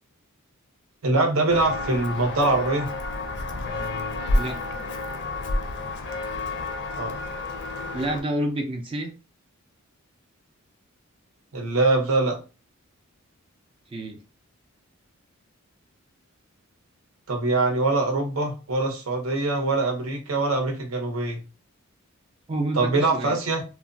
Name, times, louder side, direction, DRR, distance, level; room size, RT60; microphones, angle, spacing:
voice 1, 1.0-2.9 7.0-7.1 11.5-12.4 17.3-21.4 22.7-23.6, right 2 dB, 75° right, 3 dB, 0.8 m, -23 dB
Walk footsteps, 1.5-8.2, left 2 dB, 55° left, 0.4 m, -30 dB
voice 2, 7.9-9.1 13.9-14.2 22.5-23.4, right 1 dB, 25° right, 4 dB, 0.3 m, -29 dB
2.9 x 2.1 x 2.5 m, 0.32 s
head